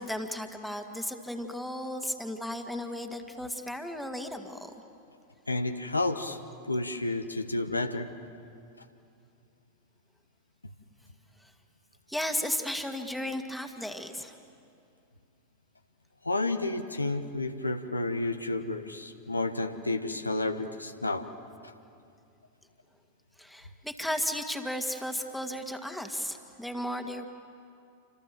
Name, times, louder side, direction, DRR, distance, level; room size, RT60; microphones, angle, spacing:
voice 1, 0.0-4.7 11.4-11.5 12.1-14.4 23.4-27.3, left 1 dB, ahead, 5 dB, 2.0 m, -34 dB
voice 2, 5.5-6.4 6.7-8.1 16.2-21.3, left 2 dB, 80° left, 7 dB, 1.2 m, -31 dB
28.5 x 26.0 x 7.6 m, 2.5 s
figure-of-eight pair, 90°, 0 cm